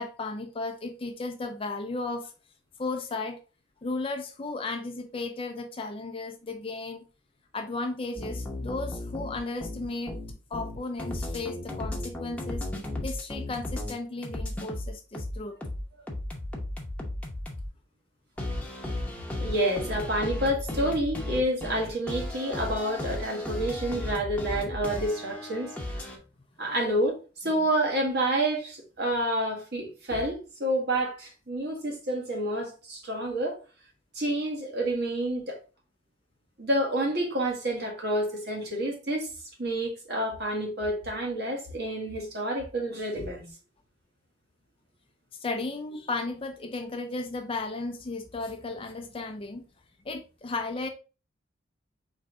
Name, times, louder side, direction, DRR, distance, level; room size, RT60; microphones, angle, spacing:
voice 1, 0.0-2.3 2.8-3.4 3.8-7.1 7.5-10.2 10.5-12.6 13.0-15.6 45.4-49.6 50.1-50.9, left 3 dB, 30° left, 0.5 m, -34 dB
sound 1, 8.2-13.9 14.2-17.7 18.4-26.2, left 1 dB, 5° left, 0.8 m, -35 dB
voice 2, 19.4-25.7 26.6-33.6 34.1-35.6 36.6-39.3 39.6-43.5, right 1 dB, 55° right, 1.6 m, -29 dB
4.4 x 3.1 x 3.7 m
head